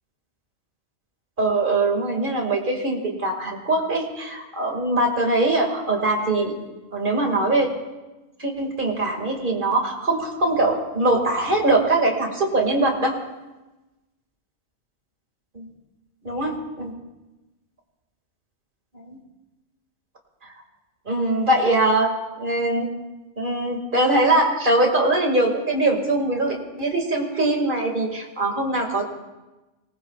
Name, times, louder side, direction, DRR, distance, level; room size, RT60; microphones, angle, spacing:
voice 1, 1.4-6.6 6.9-7.7 8.4-13.1 15.5-15.6 16.2-16.9 19.0-19.2 21.1-22.9 23.4-29.0, right 2 dB, 45° right, 1 dB, 2.5 m, -22 dB
25.5 x 19.0 x 2.4 m, 1.1 s
omnidirectional pair, 1.2 m